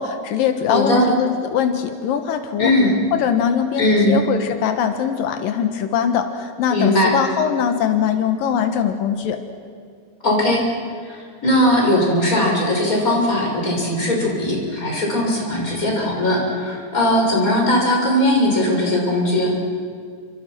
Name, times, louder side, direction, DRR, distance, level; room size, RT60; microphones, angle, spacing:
voice 1, 0.0-2.8 3.1-9.4, left 8 dB, 85° left, 7 dB, 3.1 m, -21 dB
voice 2, 0.7-1.1 2.6-2.9 3.8-4.2 6.7-7.1 10.2-10.6 11.1-19.5, left 1 dB, 25° left, -1 dB, 6.7 m, -19 dB
29.5 x 27.0 x 6.1 m, 2.2 s
omnidirectional pair, 3.9 m